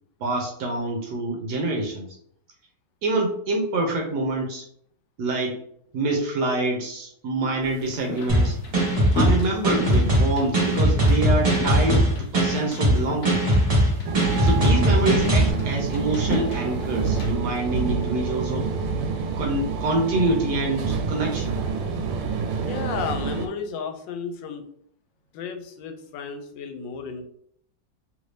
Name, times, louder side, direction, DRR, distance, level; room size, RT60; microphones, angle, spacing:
voice 1, 0.2-2.1 3.0-4.6 5.2-5.6 5.9-8.6 9.1-13.4 14.4-18.7 19.4-21.6, right 2 dB, 70° right, 1 dB, 1.2 m, -26 dB
sound 1, 7.6-17.3, left 3 dB, 60° left, 0.8 m, -36 dB
sound 2, 8.3-15.5, right 1 dB, 25° right, 0.9 m, -20 dB
sound 3, 14.0-23.5, right 5 dB, 85° right, 1.3 m, -27 dB
voice 2, 22.7-24.6 25.3-27.2, left 6 dB, 80° left, 6 dB, 1.3 m, -33 dB
3.1 x 2.6 x 3.2 m, 0.65 s
omnidirectional pair, 2.0 m